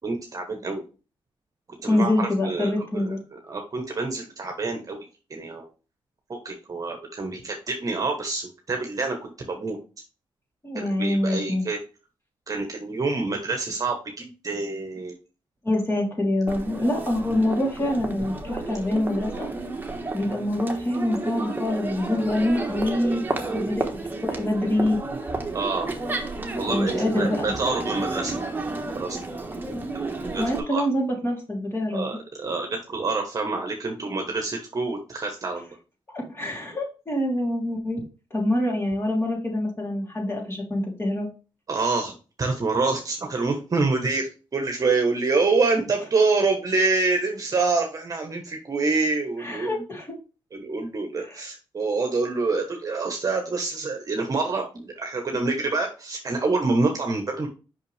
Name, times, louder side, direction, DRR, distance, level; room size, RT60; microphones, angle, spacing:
voice 1, 0.0-0.8 1.8-5.0 5.3-5.6 6.4-9.8 10.7-11.8 12.5-15.1 25.5-25.9 26.6-28.4 28.9-29.2 30.2-30.8 31.9-35.8 41.7-42.1 42.4-49.8 50.5-57.5, right 3 dB, 40° right, 3 dB, 1.1 m, -26 dB
voice 2, 1.9-3.2 10.6-11.6 15.6-19.5 20.1-25.0 26.7-27.5 30.1-32.2 36.1-38.0 38.3-41.3 49.4-50.1 51.2-51.4, left 1 dB, 25° left, -1 dB, 3.1 m, -25 dB
Crowd, 16.5-30.6, right 3 dB, 20° right, 1.3 m, -31 dB
5.7 x 5.6 x 3.4 m, 0.34 s
cardioid pair, 100°, 10 cm